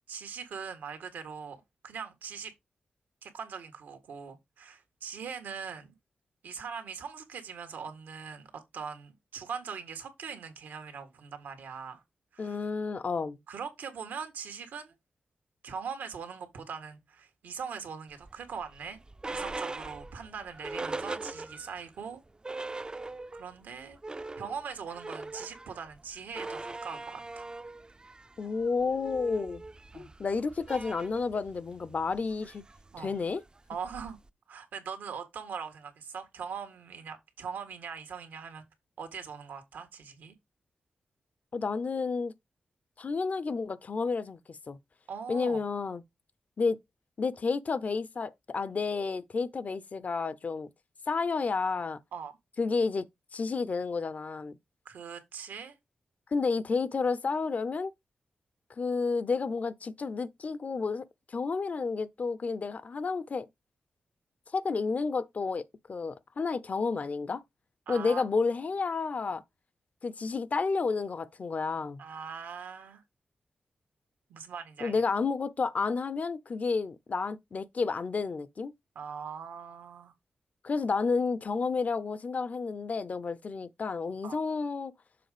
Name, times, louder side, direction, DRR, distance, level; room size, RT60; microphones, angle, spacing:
voice 1, 0.1-1.6 1.8-2.5 3.2-5.9 6.4-12.0 12.3-12.7 13.5-14.9 15.6-19.0 19.3-22.2 22.7-22.9 23.3-24.0 24.4-27.4 29.9-30.1 32.9-33.1 33.7-34.2 34.5-38.6 39.0-40.3 45.1-45.6 52.1-52.3 54.8-55.7 67.9-68.2 72.0-73.0 74.3-75.0 78.9-80.1 84.2-84.4, right 6 dB, 90° right, 1.6 m, -41 dB
voice 2, 12.4-13.4 28.4-29.6 29.9-32.6 33.0-33.4 41.5-42.3 43.0-44.8 45.3-46.0 46.6-46.8 47.2-50.7 51.1-52.0 52.6-53.1 53.3-54.6 56.3-57.9 58.8-63.5 64.5-67.4 67.9-69.4 70.0-72.0 74.8-78.7 80.6-84.9, left 4 dB, 55° left, 0.7 m, -31 dB
sound 1, 18.2-21.8 22.2-22.3 22.4-23.5 23.8-34.3, right 3 dB, 25° right, 0.5 m, -41 dB
6.9 x 3.7 x 5.0 m
cardioid pair, 50°, 3 cm